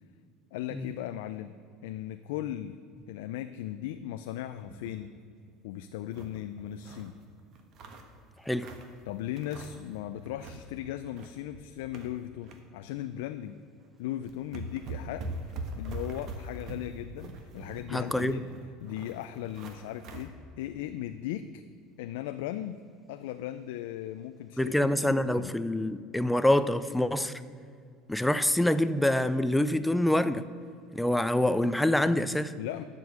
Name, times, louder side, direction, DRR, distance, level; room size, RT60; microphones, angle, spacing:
voice 1, 0.5-1.6 1.8-2.8 3.1-5.1 5.6-7.2 9.1-13.6 14.0-18.5 18.8-21.6 22.0-22.8 23.1-25.5 32.6-32.8, left 12 dB, 85° left, 0.4 m, -37 dB
sound 1, 4.6-5.0 5.4-5.5 5.8-7.1 7.5-9.0 9.4-9.9 10.2-10.6 11.0-12.6 13.0-13.1 13.8-13.9 14.2-20.3, right 2 dB, 50° right, 1.3 m, -42 dB
voice 2, 17.9-18.4 24.6-27.3 28.1-30.4 30.9-32.5, left 1 dB, 5° left, 0.4 m, -26 dB
11.5 x 5.2 x 7.6 m
supercardioid pair, 130°, 0 cm